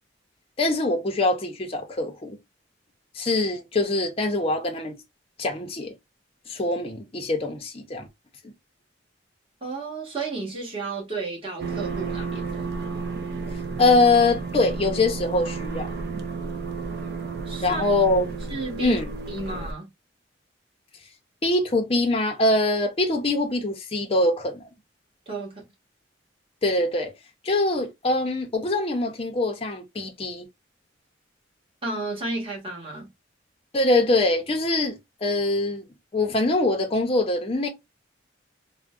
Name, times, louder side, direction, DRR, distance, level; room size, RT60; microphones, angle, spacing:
voice 1, 0.6-2.4 3.1-5.0 5.4-5.9 6.5-8.1 8.4-8.5 13.8-15.9 17.6-18.3 18.8-19.1 21.4-24.7 26.6-27.1 27.4-30.5 33.7-35.8 36.1-37.7, left 2 dB, 30° left, 0.6 m, -23 dB
voice 2, 9.6-12.6 17.5-17.8 18.5-19.0 19.3-19.9 25.3-25.6 31.8-33.1, right 3 dB, 30° right, 1.3 m, -32 dB
sound 1, 11.6-19.7, right 4 dB, 55° right, 0.4 m, -32 dB
3.5 x 2.1 x 2.3 m
head